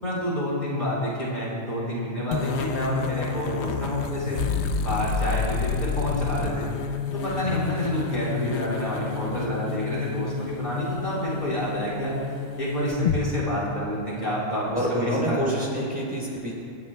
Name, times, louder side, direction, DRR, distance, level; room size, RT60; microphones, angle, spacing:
voice 1, 0.0-4.4 4.8-6.7 7.1-12.2 12.6-15.4, equal, 40° left, -7 dB, 3.9 m, -28 dB
sound 1, 2.3-13.2, left 6 dB, 60° left, 0.9 m, -30 dB
voice 2, 7.3-7.6 14.7-16.5, equal, 5° right, -6 dB, 3.8 m, -27 dB
28.0 x 13.0 x 2.2 m, 2.5 s
omnidirectional pair, 1.4 m